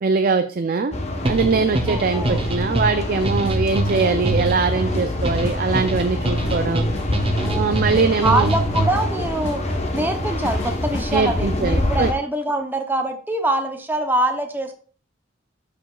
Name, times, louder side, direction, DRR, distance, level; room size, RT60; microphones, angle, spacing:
voice 1, 0.0-0.9 1.3-6.8 7.6-8.5 11.1-12.1, right 4 dB, 45° right, 8 dB, 0.4 m, -22 dB
sound 1, 0.9-12.1, left 1 dB, 35° left, 1.0 m, -26 dB
sound 2, 1.2-9.2, right 1 dB, 30° right, 1.0 m, -25 dB
voice 2, 1.9-2.4 7.4-9.6 9.9-14.8, right 1 dB, 10° right, 5 dB, 0.7 m, -24 dB
Drum kit / Snare drum / Bass drum, 3.2-11.2, left 1 dB, 65° left, 2.9 m, -34 dB
12.0 x 5.0 x 2.3 m, 0.40 s
head